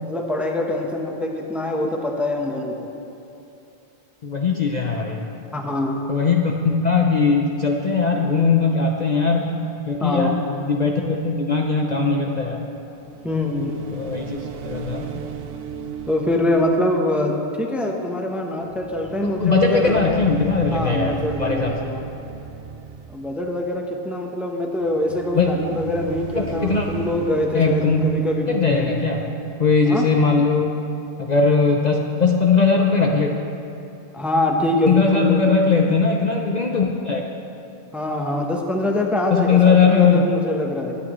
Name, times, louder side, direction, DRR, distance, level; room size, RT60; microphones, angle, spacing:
voice 1, 0.0-2.9 5.5-6.0 10.0-10.3 13.2-13.8 16.1-20.1 20.7-22.1 23.1-28.9 29.9-30.7 34.1-35.6 37.9-41.0, left 1 dB, ahead, 1 dB, 0.8 m, -24 dB
voice 2, 4.2-5.3 6.1-12.6 13.9-15.1 19.2-21.7 25.4-25.5 26.4-26.9 27.5-28.0 28.5-29.2 29.6-30.7 31.2-33.3 34.9-37.3 39.3-40.2, left 5 dB, 45° left, 1 dB, 0.7 m, -19 dB
sound 1, 12.9-18.3 18.6-23.8 24.8-29.6, right 6 dB, 65° right, 0.8 m, -36 dB
21.5 x 8.6 x 3.1 m, 2.8 s
omnidirectional pair, 1.1 m